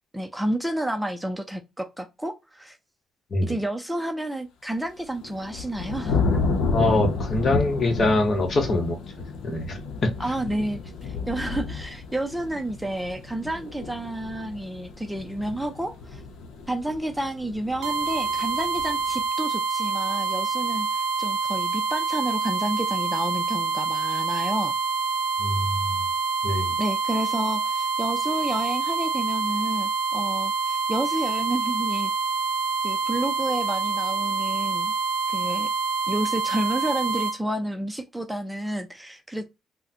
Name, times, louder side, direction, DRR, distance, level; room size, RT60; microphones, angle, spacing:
voice 1, 0.1-2.8 3.4-6.2 10.2-16.2 16.7-24.7 26.8-32.1 32.8-34.9 35.3-35.7 36.1-39.5, right 1 dB, 5° right, 0.5 m, -30 dB
sound 1, 5.0-19.2, left 4 dB, 85° left, 0.7 m, -31 dB
voice 2, 6.7-9.0 9.4-10.1 25.4-25.8 26.4-26.8, left 2 dB, 45° left, 1.0 m, -24 dB
sound 2, 17.8-37.4, right 4 dB, 85° right, 0.6 m, -26 dB
3.8 x 2.1 x 2.7 m
cardioid pair, 90°, 0 cm